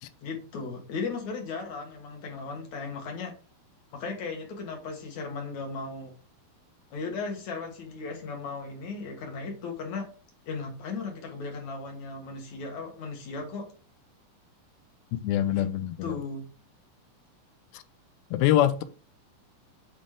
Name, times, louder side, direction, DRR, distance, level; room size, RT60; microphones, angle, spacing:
voice 1, 0.2-3.3 3.9-6.1 6.9-10.1 10.5-13.7 15.5-15.7 16.0-16.4, left 4 dB, 55° left, 2.2 m, -36 dB
voice 2, 15.1-16.2 17.7-17.8 18.3-18.8, left 12 dB, 80° left, 2.3 m, -24 dB
7.7 x 4.1 x 3.6 m
omnidirectional pair, 4.5 m